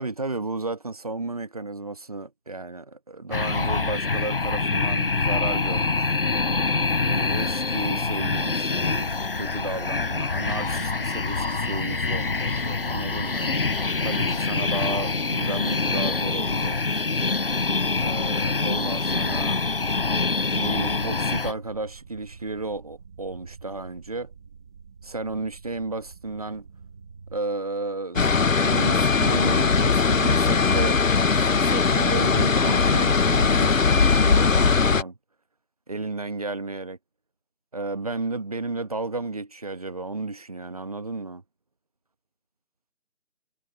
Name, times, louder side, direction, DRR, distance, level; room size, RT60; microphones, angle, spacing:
voice 1, 0.0-6.2 7.0-13.6 14.0-16.8 18.0-19.6 20.5-24.3 25.0-26.7 27.3-28.2 28.6-35.2 35.9-37.0 37.7-41.4, right 3 dB, 30° right, 1.1 m, -33 dB
sound 1, 3.3-21.5, left 3 dB, 45° left, 0.8 m, -25 dB
sound 2, 21.0-27.4, right 5 dB, 5° right, 1.2 m, -47 dB
sound 3, 28.2-35.0, left 5 dB, 80° left, 0.9 m, -20 dB
figure-of-eight pair, 165°, 39 cm